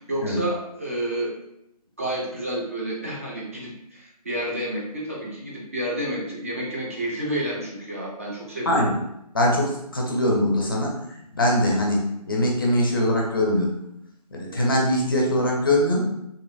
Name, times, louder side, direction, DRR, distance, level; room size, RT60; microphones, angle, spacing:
voice 1, 0.0-1.3 2.0-8.9, right 1 dB, 20° right, -4 dB, 0.4 m, -30 dB
voice 2, 9.3-11.0 11.3-13.7 14.3-16.0, left 1 dB, 35° left, -1 dB, 0.5 m, -22 dB
2.8 x 2.4 x 2.4 m, 0.80 s
figure-of-eight pair, 165°, 20 cm